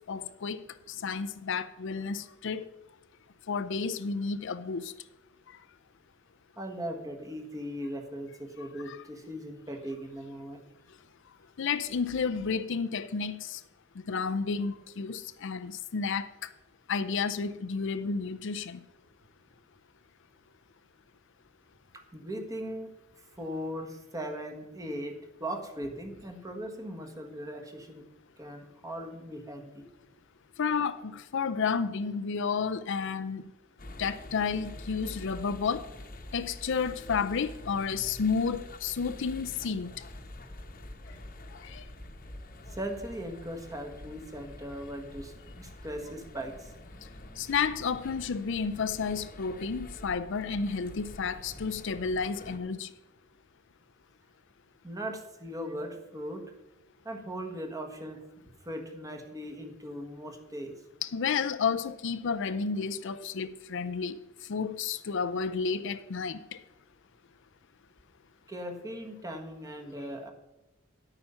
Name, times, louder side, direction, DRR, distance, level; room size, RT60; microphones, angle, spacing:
voice 1, 0.1-0.6 0.9-2.6 3.5-4.9 8.9-9.0 11.6-13.6 14.1-16.5 16.9-18.8 30.6-33.4 34.0-35.9 36.3-39.9 41.6-41.8 47.4-52.9 61.0-64.2 64.5-66.4, left 5 dB, 60° left, 0.5 m, -31 dB
voice 2, 6.6-10.6 22.1-28.0 28.4-29.9 42.7-46.7 54.8-56.5 57.0-58.2 58.6-60.8 68.5-70.3, equal, 15° right, 1.5 m, -39 dB
sound 1, 33.8-52.6, left 1 dB, 45° left, 1.1 m, -46 dB
11.0 x 8.8 x 5.6 m
head